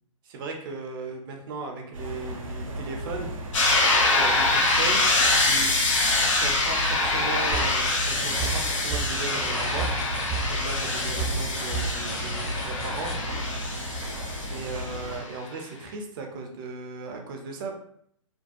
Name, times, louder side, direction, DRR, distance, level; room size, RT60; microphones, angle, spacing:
voice 1, 0.2-3.5 4.1-5.7 6.1-10.0 10.5-13.1 14.5-17.8, right 3 dB, 40° right, 2 dB, 0.5 m, -36 dB
sound 1, 1.9-15.2, equal, 85° right, 0.7 m, -34 dB
sound 2, 3.5-15.2, left 2 dB, 70° left, 0.7 m, -25 dB
sound 3, 7.5-13.1, right 3 dB, 20° left, 0.9 m, -34 dB
2.6 x 2.2 x 2.4 m, 0.67 s
hypercardioid pair, 130°, 17 cm